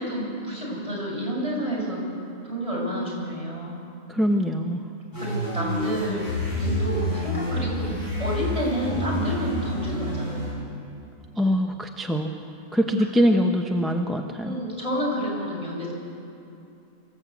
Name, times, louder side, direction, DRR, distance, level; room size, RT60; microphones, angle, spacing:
voice 1, 0.0-2.0 2.4-3.8 5.1-6.3 6.6-7.9 8.2-10.4 14.4-15.9, equal, 25° right, -5 dB, 6.6 m, -29 dB
voice 2, 4.1-4.8 11.4-12.3 12.7-14.5, equal, ahead, 2 dB, 0.7 m, -23 dB
sound 1, 5.1-10.5, left 1 dB, 60° left, 6.3 m, -28 dB
24.5 x 14.0 x 8.4 m, 2.8 s
omnidirectional pair, 1.5 m